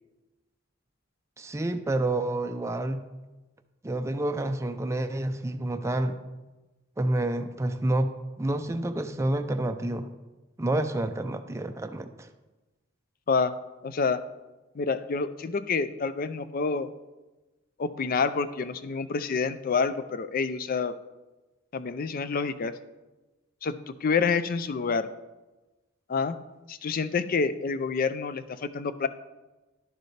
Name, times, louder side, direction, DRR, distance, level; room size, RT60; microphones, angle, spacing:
voice 1, 1.4-3.0 3.8-6.2 7.0-10.1 10.6-12.3, right 1 dB, 15° right, 7 dB, 0.4 m, -29 dB
voice 2, 13.8-14.2 14.7-16.9 17.8-21.0 21.7-22.7 23.6-25.1 26.1-26.4 26.7-29.1, left 5 dB, 45° left, 13 dB, 0.4 m, -28 dB
11.0 x 6.7 x 3.3 m, 1.1 s
head